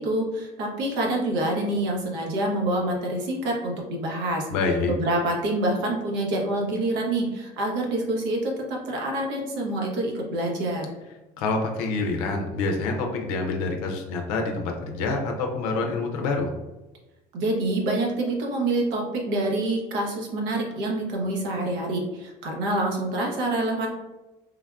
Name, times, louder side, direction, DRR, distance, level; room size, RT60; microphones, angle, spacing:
voice 1, 0.0-4.5 4.9-10.9 17.3-23.9, right 1 dB, 75° right, 0 dB, 0.8 m, -26 dB
voice 2, 4.5-4.9 11.4-16.5, left 3 dB, 85° left, 3 dB, 0.5 m, -27 dB
3.3 x 2.2 x 2.3 m, 1.1 s
supercardioid pair, 80°, 19 cm